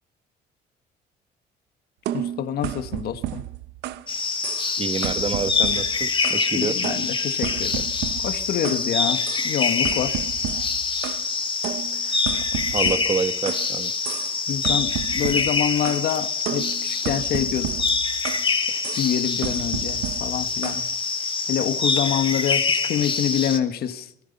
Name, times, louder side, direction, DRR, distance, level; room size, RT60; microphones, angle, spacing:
voice 1, 2.1-3.4 6.5-7.8 8.2-10.2 14.5-17.7 18.7-20.8 21.5-24.1, left 10 dB, 65° left, 1.7 m, -26 dB
sound 1, 2.1-4.1 4.4-4.8 5.0-6.5 6.8-8.9 9.3-9.5 9.8-11.3 11.6-13.7 14.0-14.4 14.6-16.1 16.5-18.5 18.8-19.1 19.4-20.9, right 12 dB, 85° right, 1.2 m, -32 dB
sound 2, 4.1-23.6, left 4 dB, 30° left, 2.2 m, -25 dB
voice 2, 4.8-6.8 11.9-13.9, right 5 dB, 35° right, 1.5 m, -28 dB
25.5 x 19.0 x 5.5 m
cardioid pair, 110°, 17 cm